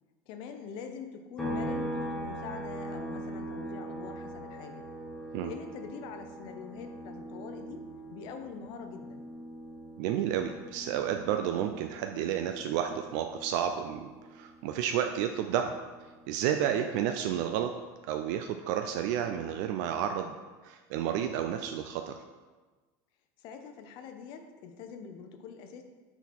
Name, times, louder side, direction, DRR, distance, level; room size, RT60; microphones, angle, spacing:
voice 1, 0.3-4.8 5.4-9.3 16.7-16.9 23.4-25.8, left 6 dB, 55° left, 6 dB, 0.6 m, -44 dB
sound 1, 1.4-14.9 15.3-17.5, right 1 dB, 5° left, 1.2 m, -41 dB
voice 2, 10.0-15.7 16.3-17.7 18.1-20.4 20.6-22.1, right 9 dB, 70° right, 6 dB, 0.3 m, -31 dB
5.9 x 3.9 x 4.3 m, 1.3 s
supercardioid pair, 145°, 10 cm